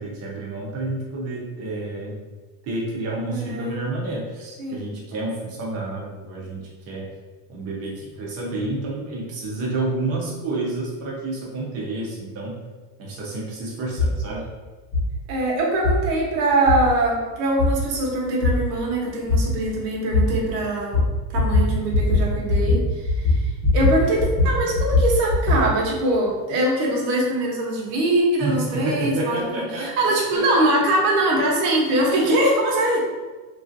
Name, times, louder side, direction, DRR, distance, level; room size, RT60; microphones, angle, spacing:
voice 1, 0.0-2.1 2.6-4.4 4.7-7.1 7.5-12.5 13.0-14.4 28.4-30.4, right 2 dB, 30° right, -3 dB, 0.6 m, -29 dB
voice 2, 3.3-3.8 4.4-4.9 15.3-21.0 21.3-33.0, right 1 dB, 85° right, -2 dB, 1.0 m, -22 dB
sound 1, 14.0-14.1 14.9-15.0 15.8-15.9 16.7-16.8 17.6-17.7 18.4-18.5 19.3-19.4 20.1-20.2 20.9-21.1 21.3-21.6 21.9-22.2 22.5-22.8 23.0-23.9 24.2-25.6, left 3 dB, 20° left, 0.8 m, -19 dB
3.0 x 2.5 x 2.5 m, 1.3 s
cardioid pair, 170°, 48 cm